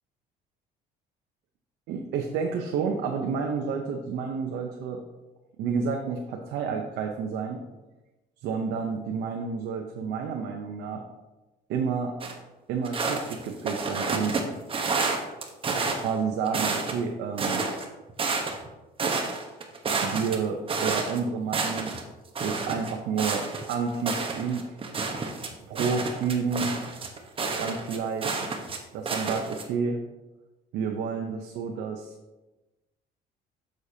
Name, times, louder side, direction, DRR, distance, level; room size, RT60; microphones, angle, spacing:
voice 1, 1.9-5.0 5.6-7.6 8.4-11.0 11.7-12.2 12.7-14.4 15.8-17.6 20.0-21.9 22.4-24.8 25.7-26.8 27.6-28.3 28.9-30.0 30.7-32.1, right 5 dB, 80° right, 2 dB, 0.7 m, -30 dB
sound 1, 12.2-12.3 12.8-14.4 14.7-16.1 16.5-17.0 17.4-18.7 19.0-21.2 21.5-22.0 22.4-28.8 29.1-29.6, right 4 dB, 35° right, 1.0 m, -30 dB
8.1 x 6.4 x 2.8 m, 1.1 s
cardioid pair, 110°, 17 cm